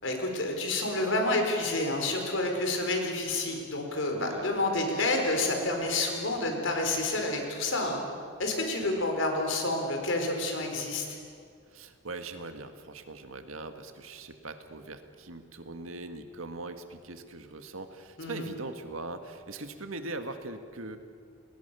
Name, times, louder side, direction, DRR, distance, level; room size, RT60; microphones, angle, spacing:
voice 1, 0.0-8.0 8.4-11.1 18.2-18.5, left 2 dB, 70° left, 3 dB, 4.7 m, -29 dB
voice 2, 4.1-4.6 8.9-9.0 11.7-21.0, right 2 dB, 90° right, 7 dB, 1.9 m, -41 dB
29.5 x 21.0 x 7.0 m, 2.2 s
head